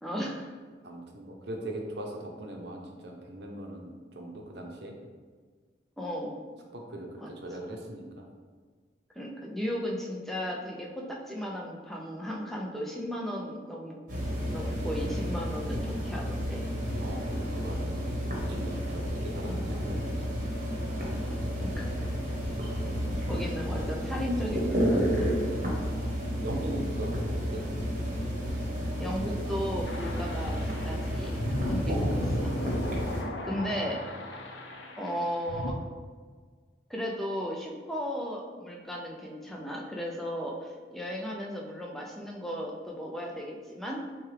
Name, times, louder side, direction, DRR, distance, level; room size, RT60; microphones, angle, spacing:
voice 1, 0.0-0.5 6.0-6.4 7.2-7.3 9.1-14.0 14.5-16.6 18.5-18.7 21.6-21.9 23.3-25.3 29.0-32.8 33.4-34.0 35.0-35.8 36.9-44.1, equal, ahead, -2 dB, 0.5 m, -35 dB
voice 2, 0.8-4.9 6.7-8.3 16.9-18.1 18.4-20.2 25.7-27.7, right 1 dB, 70° right, 1 dB, 0.7 m, -40 dB
sound 1, 14.1-33.2, equal, 45° right, 1.0 m, -31 dB
sound 2, 29.8-35.7, left 1 dB, 90° left, 0.6 m, -36 dB
6.3 x 2.3 x 3.3 m, 1.5 s
head